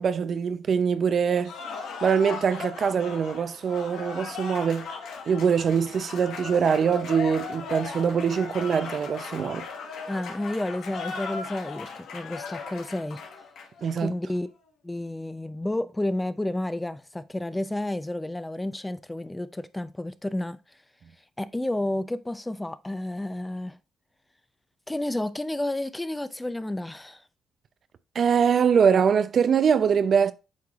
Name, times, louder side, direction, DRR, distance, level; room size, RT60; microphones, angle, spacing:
voice 1, 0.0-1.6 2.0-4.9 5.3-9.7 13.8-14.1 28.1-30.3, right 7 dB, 55° right, 0.5 m, -23 dB
Cheering / Applause, 1.4-14.0, left 5 dB, 80° left, 1.4 m, -37 dB
voice 2, 10.1-13.2 14.0-14.5 14.8-20.8 21.4-23.8 24.9-27.3, left 1 dB, 10° left, 0.5 m, -31 dB
8.4 x 4.7 x 2.4 m
cardioid pair, 90°, 0 cm